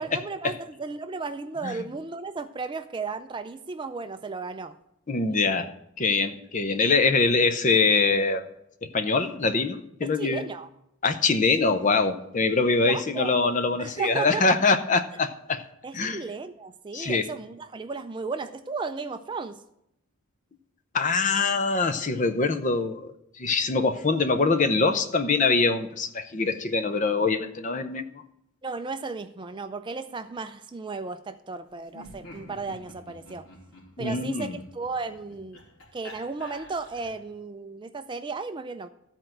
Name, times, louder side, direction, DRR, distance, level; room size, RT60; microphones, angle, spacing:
voice 1, 0.0-4.8 5.3-5.4 10.0-10.7 12.8-13.4 13.8-14.6 15.8-19.6 28.6-33.5 34.0-35.6 35.9-38.9, right 4 dB, 20° right, 9 dB, 0.3 m, -34 dB
voice 2, 5.1-5.7 6.0-8.4 8.8-10.4 11.0-15.6 15.9-16.2 16.9-17.3 20.9-28.2 34.0-34.6, left 4 dB, 35° left, 9 dB, 0.6 m, -24 dB
Laughter, 31.9-37.3, equal, 85° left, 2.8 m, -48 dB
13.0 x 4.5 x 7.6 m, 0.79 s
head